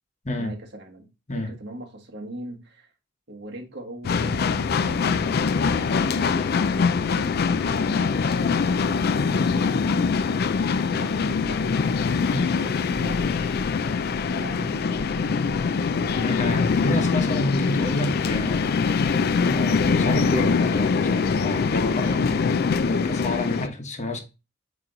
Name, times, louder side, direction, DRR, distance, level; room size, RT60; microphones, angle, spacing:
voice 1, 0.4-2.9 3.3-11.8 12.6-13.6 14.3-15.7, right 1 dB, 65° right, 1.5 m, -41 dB
sound 1, 4.0-23.7, left 5 dB, 55° left, 0.4 m, -23 dB
voice 2, 16.2-18.7 19.4-22.5 22.8-24.2, left 1 dB, 40° left, 1.1 m, -29 dB
8.5 x 3.1 x 3.9 m
head